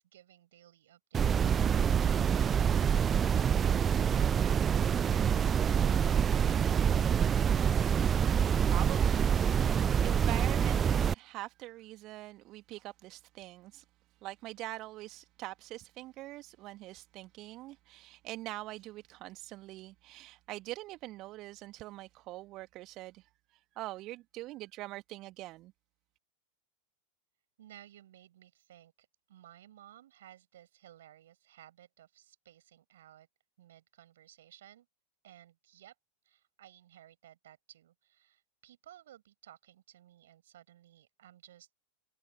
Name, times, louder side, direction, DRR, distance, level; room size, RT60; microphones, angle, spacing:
voice 1, 0.0-7.2 27.6-33.3 33.6-34.9 35.2-35.9 36.2-41.7, right 12 dB, 60° right, 7.7 m, -58 dB
sound 1, 1.1-11.1, right 8 dB, 20° right, 0.4 m, -26 dB
voice 2, 8.2-13.8 14.2-25.7, right 18 dB, 40° right, 1.7 m, -44 dB
figure-of-eight pair, 90°, 0 cm